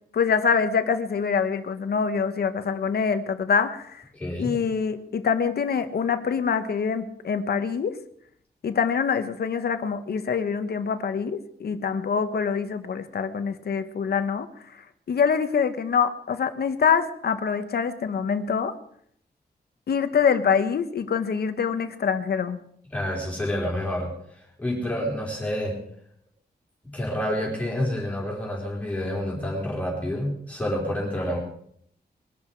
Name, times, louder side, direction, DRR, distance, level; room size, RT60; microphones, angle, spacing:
voice 1, 0.1-4.0 4.4-8.0 8.6-14.5 15.1-18.7 19.9-22.6, left 6 dB, 70° left, 9 dB, 1.3 m, -25 dB
voice 2, 4.1-4.5 22.9-24.1 24.6-25.7 26.9-31.4, left 1 dB, 10° left, -4 dB, 4.5 m, -28 dB
21.5 x 12.0 x 4.7 m, 0.67 s
wide cardioid pair, 180°, 17 cm